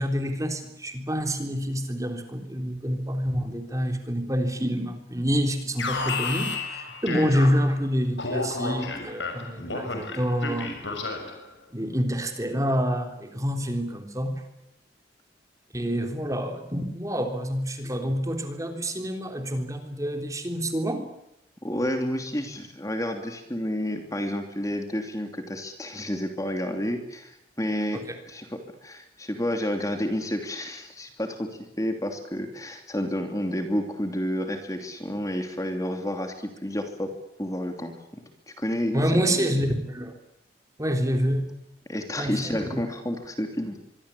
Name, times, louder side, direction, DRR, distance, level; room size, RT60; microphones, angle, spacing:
voice 1, 0.0-10.9 11.7-14.4 15.7-21.1 27.9-28.2 38.9-40.1 40.8-41.5 42.2-42.8, equal, 20° right, 5 dB, 3.5 m, -27 dB
Alarm, 5.8-7.8 8.2-11.4, left 3 dB, 90° left, 6.2 m, -32 dB
voice 2, 21.6-37.1 37.4-39.5 41.9-43.8, equal, 20° left, 5 dB, 2.8 m, -30 dB
25.0 x 24.0 x 8.4 m, 0.82 s
head